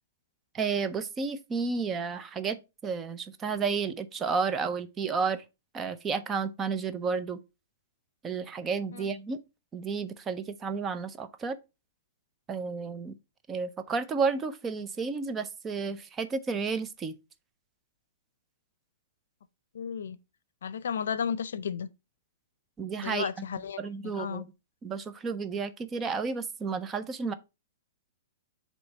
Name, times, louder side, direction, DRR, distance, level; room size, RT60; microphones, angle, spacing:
voice 1, 0.5-5.4 5.7-7.4 8.2-9.4 9.7-11.6 12.5-13.2 13.5-17.1 22.8-23.5 23.8-24.4 24.8-27.3, right 5 dB, 15° right, 0.5 m, -32 dB
voice 2, 19.7-20.2 20.6-21.9 23.0-24.4, left 7 dB, 80° left, 0.5 m, -34 dB
7.8 x 3.1 x 4.0 m
hypercardioid pair, 150°, 0 cm